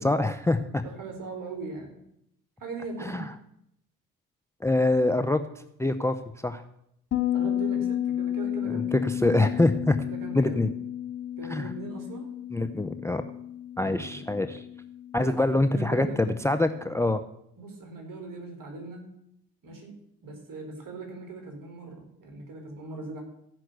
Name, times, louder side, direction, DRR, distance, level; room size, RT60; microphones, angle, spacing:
voice 1, 0.0-0.8 3.0-3.2 4.6-5.4 5.8-6.1 6.4-6.6 8.7-10.0 10.3-10.7 11.5-11.7 12.5-13.2 13.8-14.6 15.1-16.1 16.4-17.2, left 2 dB, 5° left, 10 dB, 0.7 m, -24 dB
voice 2, 0.8-2.0 2.6-3.2 7.3-9.1 10.0-10.7 11.4-12.3 13.8-14.2 15.1-15.3 15.7-16.3 17.6-19.1 19.6-19.9 20.2-23.2, right 3 dB, 50° right, 2 dB, 4.6 m, -39 dB
Bass guitar, 7.1-16.5, left 11 dB, 40° left, 3.0 m, -32 dB
14.5 x 6.0 x 8.0 m, 0.78 s
hypercardioid pair, 60°, 42 cm